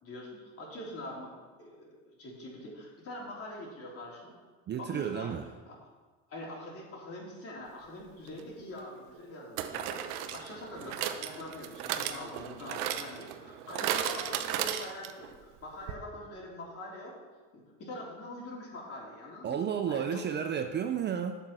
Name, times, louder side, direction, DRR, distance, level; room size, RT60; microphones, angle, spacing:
voice 1, 0.0-1.3 1.6-4.3 4.8-5.4 5.7-5.9 6.3-17.2 17.5-20.3, left 1 dB, 40° left, -3 dB, 3.7 m, -44 dB
voice 2, 4.7-5.5 19.4-21.4, right 8 dB, 30° right, 7 dB, 0.5 m, -32 dB
sound 1, 8.3-8.4 9.6-15.3 15.6-15.7 15.9-16.0, right 10 dB, 80° right, 1.0 m, -35 dB
9.1 x 7.5 x 6.0 m, 1.4 s
supercardioid pair, 120°, 36 cm